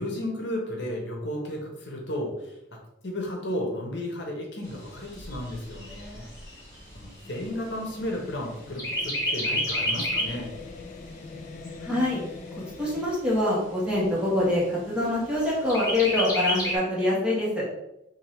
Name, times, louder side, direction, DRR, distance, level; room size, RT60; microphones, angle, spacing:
voice 1, 0.0-2.5 3.0-6.3 6.9-10.5, left 1 dB, 65° left, -1 dB, 1.0 m, -33 dB
Chirp tweet, 4.6-8.4 8.8-10.4 10.9-11.0 11.3-12.3 12.9-13.0 13.4-13.5 13.9-14.4 15.7-16.8, left 1 dB, 20° left, 1.3 m, -30 dB
sound 1, 7.2-13.1, left 4 dB, 40° left, 0.3 m, -43 dB
voice 2, 11.8-12.2 12.8-17.6, left 1 dB, 5° right, -7 dB, 1.3 m, -25 dB
3.7 x 2.6 x 4.3 m, 0.85 s
head